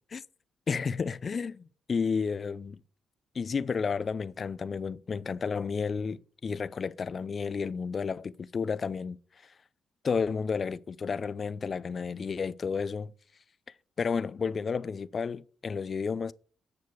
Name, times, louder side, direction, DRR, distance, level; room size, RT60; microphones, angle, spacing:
voice 1, 0.7-2.8 3.3-9.2 9.4-9.5 10.0-13.1 14.0-16.3, left 5 dB, 45° left, 0.5 m, -32 dB
9.6 x 6.7 x 4.6 m
supercardioid pair, 65°, 0 cm